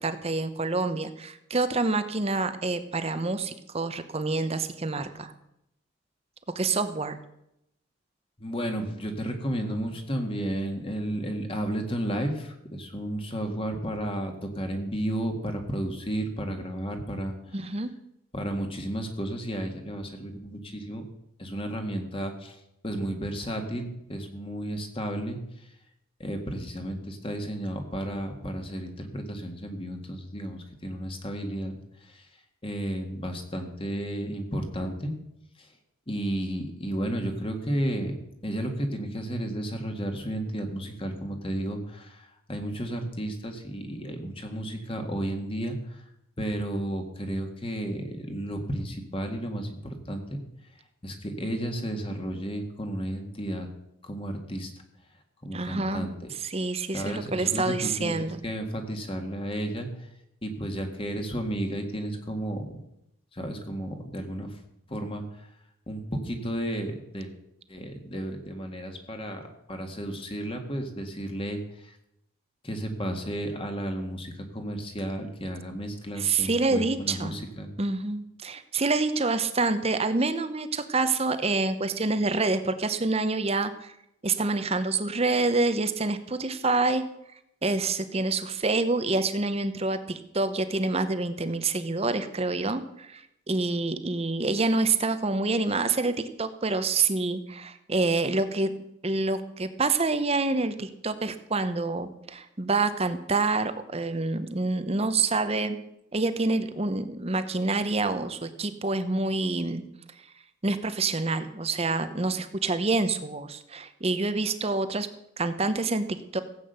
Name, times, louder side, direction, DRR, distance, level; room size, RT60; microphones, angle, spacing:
voice 1, 0.0-5.3 6.5-7.2 17.5-17.9 55.5-56.1 56.4-58.4 76.2-77.4 77.8-83.9 84.2-87.0 87.6-98.7 99.0-105.8 106.1-109.8 110.6-115.1 115.4-116.4, right 3 dB, 30° right, 11 dB, 0.8 m, -27 dB
voice 2, 8.4-17.4 18.3-21.1 21.4-22.6 22.8-25.4 26.2-31.7 32.1-32.2 32.6-35.1 36.1-38.1 38.4-45.8 46.4-50.4 51.0-53.7 54.0-54.7 55.4-56.3 56.9-59.9 60.4-62.8 63.3-64.5 64.9-65.2 65.9-67.3 67.7-71.6 72.6-77.7, right 1 dB, 25° left, 5 dB, 1.8 m, -32 dB
16.0 x 8.5 x 6.8 m, 0.82 s
head